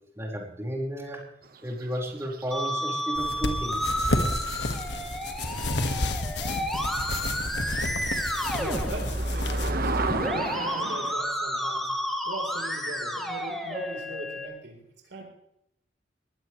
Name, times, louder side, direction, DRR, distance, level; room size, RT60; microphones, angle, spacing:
voice 1, 0.1-1.2 1.6-3.8, equal, 15° right, -1 dB, 4.8 m, -33 dB
sound 1, 1.4-2.9 6.5-6.6 7.1-7.2 7.4-11.1, right 3 dB, 55° right, 1.4 m, -34 dB
Musical instrument, 2.5-14.5, equal, ahead, 2.6 m, -31 dB
sound 2, 3.1-9.7, left 2 dB, 70° left, 1.8 m, -31 dB
voice 2, 8.5-11.9 12.2-15.2, right 1 dB, 70° right, 0 dB, 4.1 m, -39 dB
21.0 x 16.0 x 3.3 m, 0.77 s
head